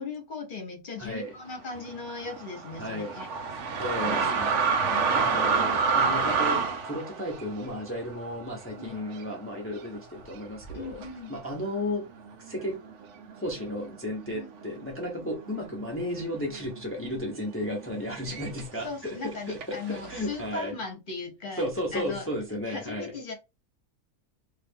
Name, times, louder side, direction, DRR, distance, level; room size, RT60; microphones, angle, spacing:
voice 1, 0.0-3.3 4.8-5.4 5.8-6.3 8.7-9.1 10.7-11.4 14.3-14.5 15.2-15.3 18.8-22.3 22.7-23.3, left 4 dB, 40° left, 1.1 m, -38 dB
voice 2, 1.0-1.3 2.8-3.1 3.8-4.6 5.1-11.0 11.3-12.1 12.4-12.8 13.4-20.7 21.6-23.1, left 1 dB, 10° left, 0.7 m, -34 dB
sound 1, 1.8-9.4 9.7-9.9 10.6-11.1 11.8-11.9 12.2-13.9 14.2-14.8 15.0-18.8 19.6-20.5, right 5 dB, 65° right, 0.9 m, -29 dB
2.8 x 2.5 x 3.5 m
omnidirectional pair, 1.5 m